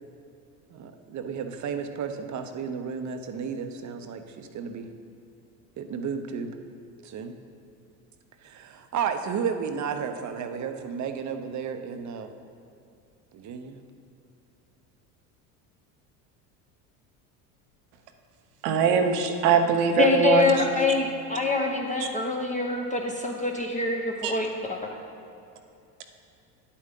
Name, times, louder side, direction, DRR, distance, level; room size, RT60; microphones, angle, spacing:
voice 1, 0.7-4.9 5.8-6.6 7.0-7.3 8.4-12.3 13.3-13.8, right 6 dB, 40° right, 7 dB, 0.8 m, -33 dB
voice 2, 18.6-20.5 24.2-24.3, right 6 dB, 75° right, 5 dB, 1.0 m, -21 dB
voice 3, 20.0-24.9, left 4 dB, 15° left, 0 dB, 0.8 m, -25 dB
9.4 x 8.4 x 3.8 m, 2.6 s
hypercardioid pair, 80°, 47 cm